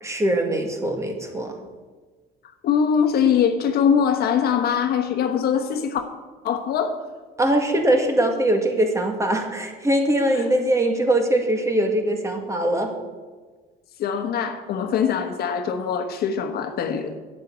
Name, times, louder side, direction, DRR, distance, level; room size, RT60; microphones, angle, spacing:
voice 1, 0.0-1.6 7.4-12.9, right 1 dB, 15° right, 4 dB, 1.9 m, -22 dB
voice 2, 2.6-6.0 6.4-7.0 10.3-10.5 14.0-17.2, left 7 dB, 65° left, 7 dB, 1.2 m, -22 dB
9.2 x 7.6 x 8.5 m, 1.4 s
cardioid pair, 110°, 17 cm